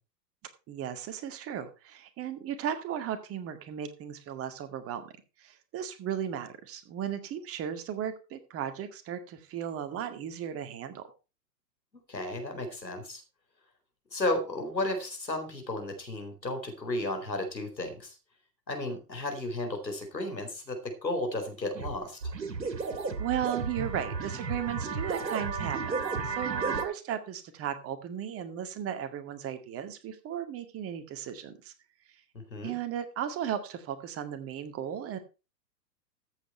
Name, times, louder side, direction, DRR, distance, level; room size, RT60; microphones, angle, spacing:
voice 1, 0.7-5.1 5.4-11.0 23.2-26.0 26.2-31.7 32.6-35.2, right 9 dB, 25° right, 9 dB, 2.0 m, -36 dB
voice 2, 12.1-13.2 14.1-18.2 18.7-22.2 32.5-32.7, left 1 dB, 85° left, 5 dB, 4.2 m, -33 dB
sound 1, 21.7-21.9 22.2-26.8, right 4 dB, 80° right, 2.4 m, -33 dB
14.0 x 8.3 x 4.5 m, 0.30 s
figure-of-eight pair, 105°, 50 cm